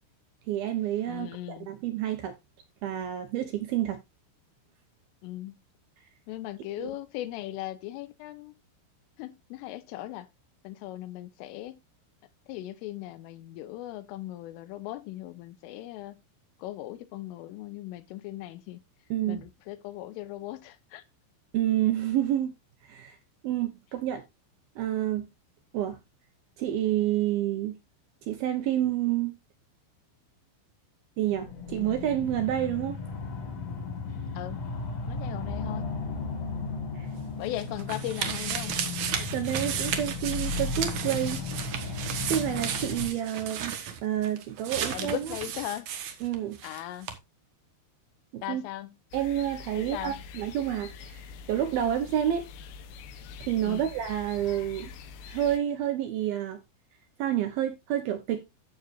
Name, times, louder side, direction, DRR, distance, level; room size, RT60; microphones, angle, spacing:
voice 1, 0.5-2.3 2.8-4.0 6.8-6.9 19.1-19.4 21.5-22.5 22.9-23.2 23.4-24.2 24.8-25.3 25.7-26.0 26.6-27.8 28.2-29.4 31.2-33.0 37.0-37.1 39.1-41.4 42.3-45.3 46.2-46.6 48.3-48.6 49.1-51.2 51.5-52.5 53.4-54.9 55.3-56.6 57.2-58.5, right 11 dB, 70° right, 2.3 m, -29 dB
voice 2, 1.1-1.7 5.2-5.6 6.3-8.5 9.2-10.3 10.7-11.8 12.5-16.2 16.6-18.8 19.3-21.0 34.4-34.7 35.1-35.9 37.4-38.8 44.7-45.9 46.6-47.1 48.4-49.0 49.7-50.2 53.6-53.9, left 14 dB, 90° left, 3.5 m, -38 dB
sound 1, 31.2-43.1, left 4 dB, 50° left, 2.2 m, -35 dB
sound 2, 37.2-46.8 47.1-47.2, right 8 dB, 85° right, 1.6 m, -34 dB
sound 3, 49.1-55.6, left 6 dB, 75° left, 2.7 m, -45 dB
14.5 x 6.7 x 2.6 m
omnidirectional pair, 5.6 m